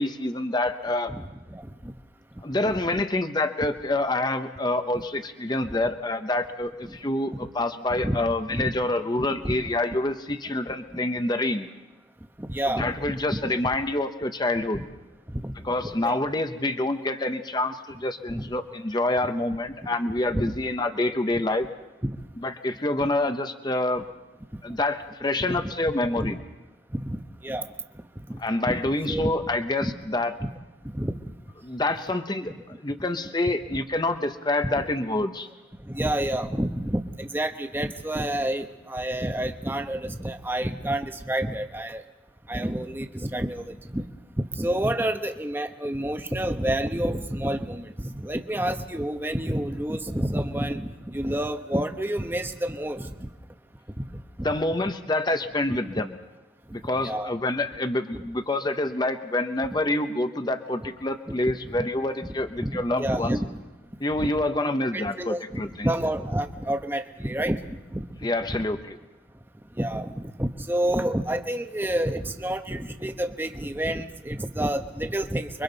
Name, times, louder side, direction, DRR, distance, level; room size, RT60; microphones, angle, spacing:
voice 1, 0.0-1.1 2.4-11.7 12.7-14.9 15.6-21.7 22.4-24.0 24.6-26.4 28.4-30.3 31.6-32.5 32.8-35.5 54.4-56.1 56.7-63.4 64.0-65.9 68.2-69.0, left 2 dB, 20° left, 8 dB, 0.8 m, -27 dB
voice 2, 1.1-1.9 4.9-5.0 6.8-7.0 7.9-8.2 8.5-8.7 9.2-9.5 12.4-13.5 15.3-15.5 15.8-16.2 18.3-18.4 20.3-20.5 22.0-22.1 25.5-25.6 26.2-26.3 26.9-27.7 28.7-28.8 29.1-29.3 29.8-29.9 30.4-30.5 30.9-31.3 33.7-33.8 35.8-42.0 42.5-44.0 44.4-53.3 54.1-54.5 56.7-57.3 58.1-58.2 61.3-61.4 61.8-61.9 62.6-63.5 64.2-64.3 64.9-67.6 67.9-68.1 69.8-75.6, right 1 dB, 10° right, 7 dB, 0.9 m, -29 dB
29.5 x 23.5 x 4.0 m, 1.1 s
head